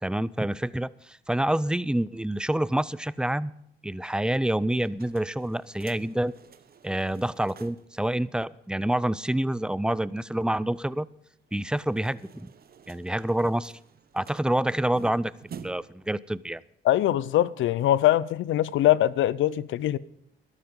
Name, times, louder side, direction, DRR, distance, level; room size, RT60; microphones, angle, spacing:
voice 1, 0.0-3.5 3.8-6.3 6.8-11.1 11.5-12.5 12.9-13.7 14.1-16.6, right 1 dB, 5° right, 0.5 m, -27 dB
sound 1, 4.7-8.0 8.3-8.4 8.6-8.7 11.5-16.1, right 7 dB, 50° right, 1.1 m, -49 dB
voice 2, 16.8-20.0, left 13 dB, 75° left, 0.6 m, -22 dB
13.0 x 12.5 x 5.3 m
cardioid pair, 90°, 20 cm